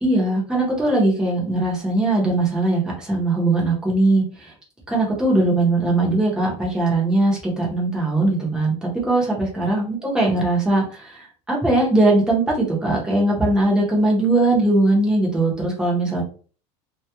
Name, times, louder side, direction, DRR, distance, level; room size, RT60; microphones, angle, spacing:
voice 1, 0.0-4.5 4.9-16.2, right 2 dB, 5° right, -3 dB, 0.6 m, -20 dB
2.2 x 2.0 x 2.8 m, 0.40 s
cardioid pair, 175°, 17 cm